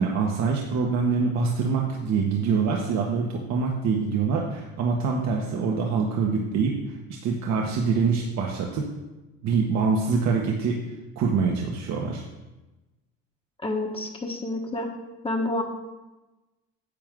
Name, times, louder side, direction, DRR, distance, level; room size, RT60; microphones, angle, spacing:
voice 1, 0.0-6.8 7.1-8.9 9.4-10.8 11.1-12.2, right 5 dB, 55° right, 0 dB, 1.5 m, -25 dB
voice 2, 13.6-14.9 15.2-15.6, left 2 dB, 15° left, 1 dB, 1.4 m, -28 dB
10.0 x 7.6 x 3.8 m, 1.1 s
supercardioid pair, 80°, 31 cm